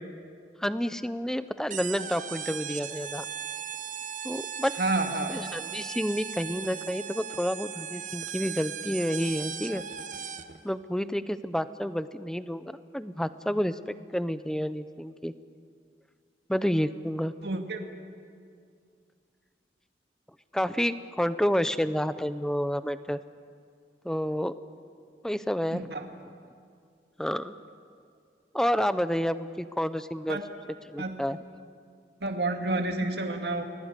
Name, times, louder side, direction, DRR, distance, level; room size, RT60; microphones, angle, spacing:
voice 1, 0.6-3.3 4.2-4.7 5.3-9.8 10.6-15.3 16.5-17.3 20.5-23.2 24.0-24.5 25.2-25.8 27.2-27.5 28.5-30.4 30.9-31.4, equal, 5° left, 13 dB, 0.7 m, -29 dB
sound 1, 1.7-10.6, right 8 dB, 45° right, 1.1 m, -38 dB
voice 2, 4.8-5.3 17.4-17.8 25.7-26.0 30.3-30.4 31.0-31.1 32.2-33.6, right 2 dB, 70° right, 4 dB, 2.3 m, -29 dB
30.0 x 21.0 x 8.2 m, 2.3 s
head